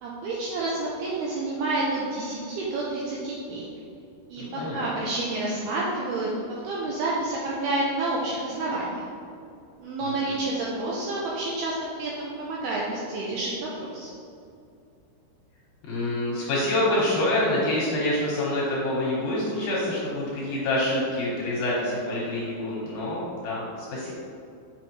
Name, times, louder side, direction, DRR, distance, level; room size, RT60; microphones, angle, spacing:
voice 1, 0.0-3.7 4.3-6.3 6.6-9.0 9.8-14.1, right 2 dB, 90° right, -4 dB, 2.3 m, -29 dB
voice 2, 4.4-4.8 10.0-10.4 15.9-23.6 23.9-24.1, left 1 dB, 70° left, -6 dB, 2.4 m, -26 dB
7.7 x 5.6 x 3.1 m, 2.5 s
omnidirectional pair, 5.3 m